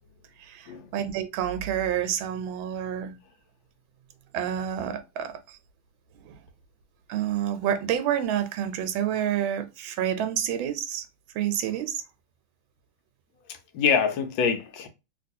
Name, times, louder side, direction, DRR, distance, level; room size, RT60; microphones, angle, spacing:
voice 1, 0.9-3.1 4.3-5.3 6.2-6.4 7.1-11.0 11.3-12.0, right 10 dB, 85° right, 1.4 m, -28 dB
voice 2, 13.5-14.9, left 6 dB, 75° left, 1.3 m, -25 dB
2.9 x 2.9 x 2.5 m
omnidirectional pair, 2.2 m